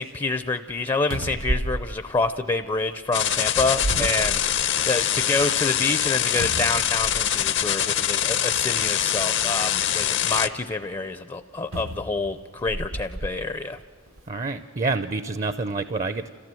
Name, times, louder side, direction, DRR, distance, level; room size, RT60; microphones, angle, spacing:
voice 1, 0.0-13.8, left 3 dB, 25° left, 10 dB, 0.5 m, -27 dB
closing a cupboard, 0.7-0.8 1.1-2.8 3.5-4.9 5.3-5.4 6.4-7.5 8.4-8.6 11.7-13.4 14.1-14.2, right 1 dB, 85° right, 1.0 m, -32 dB
sound 1, 3.1-10.5, left 10 dB, 65° left, 0.7 m, -24 dB
voice 2, 14.3-16.3, right 3 dB, 35° right, 11 dB, 0.5 m, -28 dB
30.0 x 15.0 x 7.6 m, 2.1 s
head